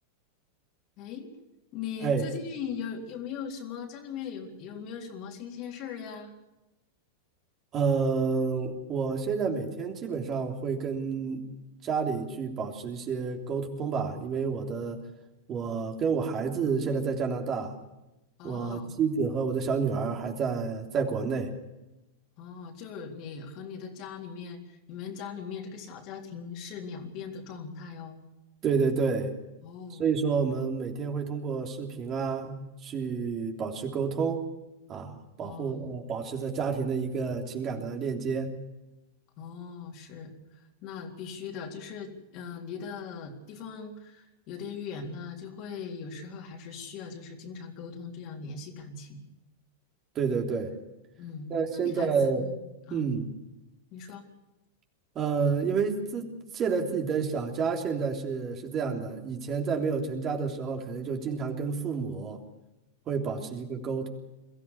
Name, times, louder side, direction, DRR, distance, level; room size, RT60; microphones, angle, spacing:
voice 1, 1.0-1.3 1.7-6.3 18.4-19.1 22.4-28.2 29.6-30.0 35.4-36.0 39.4-49.3 51.2-53.1 53.9-54.2, left 6 dB, 50° left, 2 dB, 3.8 m, -40 dB
voice 2, 7.7-11.4 11.8-15.0 15.5-17.7 18.4-21.5 28.6-29.3 30.0-34.4 34.9-38.5 50.1-50.7 51.5-52.5 52.9-53.3 55.1-56.3 56.5-62.4 63.1-64.1, right 5 dB, 35° right, 2 dB, 3.3 m, -29 dB
22.5 x 15.0 x 8.3 m, 0.96 s
hypercardioid pair, 100°, 0 cm